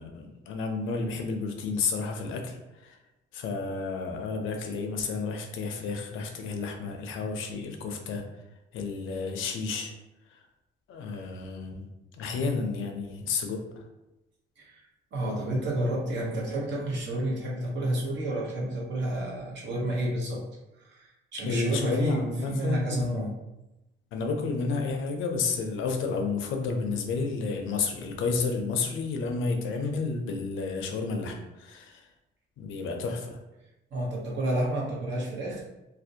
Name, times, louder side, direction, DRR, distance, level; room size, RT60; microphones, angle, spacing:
voice 1, 0.0-3.0 3.3-8.2 8.7-9.9 10.3-10.4 10.9-11.9 12.1-13.8 21.5-23.3 24.1-32.1 32.6-33.4, left 4 dB, 80° left, 3 dB, 0.5 m, -31 dB
voice 2, 15.1-20.4 20.8-23.3 33.9-35.6, right 1 dB, 65° right, -3 dB, 0.8 m, -30 dB
2.5 x 2.0 x 2.6 m, 0.96 s
cardioid pair, 90°, 20 cm